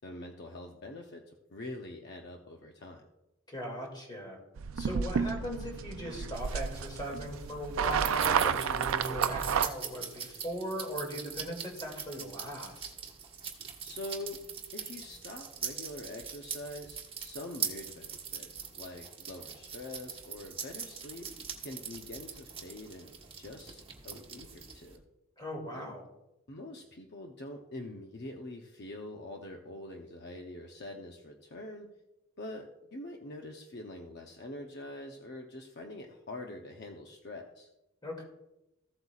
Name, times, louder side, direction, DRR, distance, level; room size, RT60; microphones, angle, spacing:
voice 1, 0.0-3.0 13.8-14.4 14.7-21.3 21.6-25.0 25.7-25.9 26.5-31.9 32.4-37.7, left 1 dB, 55° left, 2 dB, 0.8 m, -44 dB
voice 2, 3.5-4.4 4.7-12.9 25.4-26.0 38.0-38.3, equal, 20° left, 0 dB, 2.5 m, -39 dB
sound 1, 4.6-9.7, right 7 dB, 90° right, 0.4 m, -31 dB
sound 2, 6.3-25.0, right 7 dB, 25° right, 1.3 m, -42 dB
15.0 x 8.0 x 2.4 m, 0.91 s
head